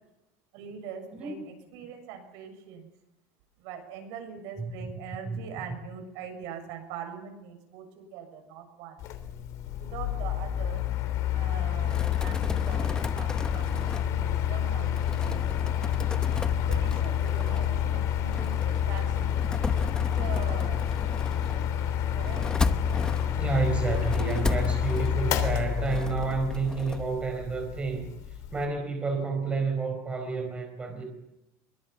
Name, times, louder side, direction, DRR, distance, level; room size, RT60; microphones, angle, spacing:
voice 1, 0.5-2.9 3.6-9.0 9.7-10.8 11.3-15.9 16.7-19.4 20.0-20.9 22.2-22.5, right 7 dB, 65° right, 5 dB, 7.2 m, -42 dB
Mechanical fan, 9.0-28.6, left 10 dB, 50° left, 3.3 m, -29 dB
sound 1, 11.8-27.2, left 3 dB, 10° left, 1.0 m, -35 dB
voice 2, 23.4-28.1 28.5-31.0, right 4 dB, 15° right, 4 dB, 4.6 m, -30 dB
24.0 x 23.0 x 7.2 m, 0.88 s
cardioid pair, 165°, 7 cm